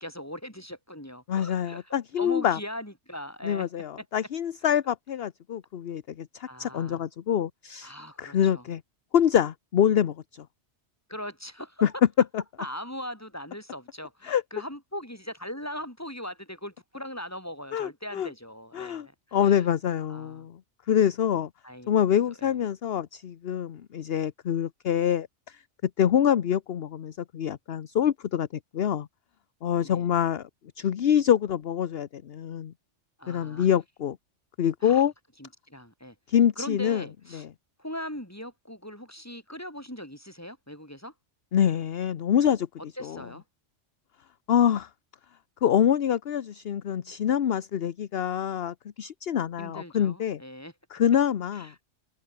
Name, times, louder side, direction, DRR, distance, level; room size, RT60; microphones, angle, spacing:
voice 1, 0.0-3.7 4.0-4.1 6.5-7.0 7.8-8.7 11.1-12.0 12.6-19.7 20.1-20.5 21.6-22.6 29.8-30.1 33.2-33.7 34.8-35.0 35.4-36.1 36.6-37.5 37.8-41.1 42.8-43.4 49.6-50.7 51.5-51.8, equal, 10° left, 6.6 m, -40 dB
voice 2, 1.3-2.6 3.4-7.9 8.2-8.8 9.1-10.4 11.8-11.9 14.2-14.4 17.7-18.3 18.7-20.6 20.9-21.5 21.9-25.6 26.0-28.5 28.7-29.1 29.6-30.4 30.8-32.7 33.3-34.2 34.6-35.1 36.3-37.0 37.3-37.5 41.5-42.7 43.0-43.2 44.5-44.9 45.6-50.4 50.9-51.7, left 9 dB, 55° left, 1.0 m, -25 dB
omnidirectional pair, 1.3 m